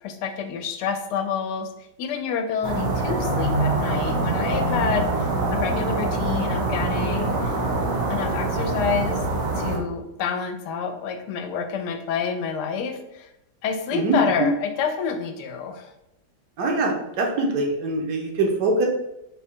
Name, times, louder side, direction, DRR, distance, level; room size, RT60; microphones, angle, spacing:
voice 1, 0.0-1.7 2.0-7.6 8.1-9.2 9.5-13.3 13.6-15.9, left 6 dB, 85° left, 6 dB, 1.2 m, -28 dB
sound 1, 2.6-9.8, right 2 dB, 45° right, 0.7 m, -24 dB
voice 2, 16.6-18.9, right 3 dB, 80° right, 1 dB, 1.3 m, -23 dB
3.7 x 2.2 x 4.3 m, 0.88 s
omnidirectional pair, 1.7 m